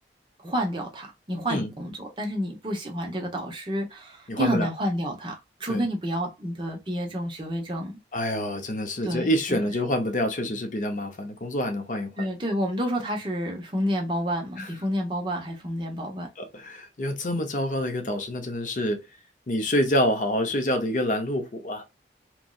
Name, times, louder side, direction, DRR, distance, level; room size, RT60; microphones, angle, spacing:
voice 1, 0.4-7.9 9.0-9.6 12.2-16.3, equal, 25° right, 0.7 m, -29 dB
voice 2, 4.3-4.7 5.7-5.9 8.1-12.3 14.6-14.7 16.4-19.0 19.5-21.8, left 1 dB, 45° left, 0.5 m, -27 dB
3.0 x 2.6 x 2.2 m
head